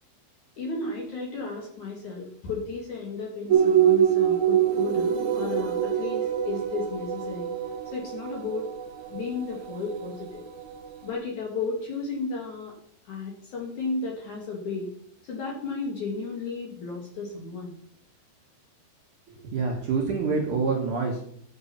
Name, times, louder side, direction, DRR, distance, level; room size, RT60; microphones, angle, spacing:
voice 1, 0.6-7.5 7.9-8.7 9.1-10.4 11.0-12.8 13.0-14.9 15.3-17.8, left 3 dB, 55° left, -1 dB, 2.6 m, -33 dB
sound 1, 3.5-10.9, right 9 dB, 85° right, 1.7 m, -25 dB
voice 2, 19.3-21.2, right 4 dB, 60° right, -1 dB, 2.3 m, -27 dB
10.5 x 7.8 x 5.7 m, 0.65 s
omnidirectional pair, 5.3 m